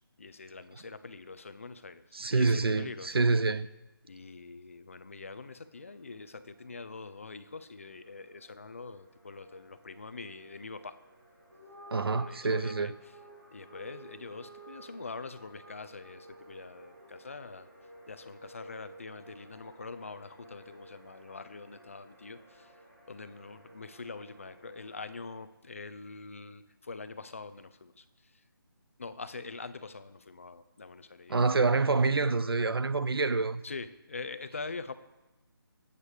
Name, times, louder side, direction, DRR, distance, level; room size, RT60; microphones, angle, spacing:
voice 1, 0.2-3.2 4.0-11.0 12.1-13.1 13.5-17.7 18.1-22.7 23.1-28.4 29.0-31.4 33.6-34.9, left 4 dB, 35° left, 0.7 m, -44 dB
voice 2, 2.1-3.7 11.9-12.9 31.3-33.6, right 3 dB, 80° right, 0.9 m, -27 dB
sound 1, 5.4-25.4, right 1 dB, 20° right, 4.3 m, -57 dB
sound 2, 11.4-18.0, right 1 dB, 45° right, 4.5 m, -52 dB
20.0 x 8.3 x 5.0 m
figure-of-eight pair, 175°, 12 cm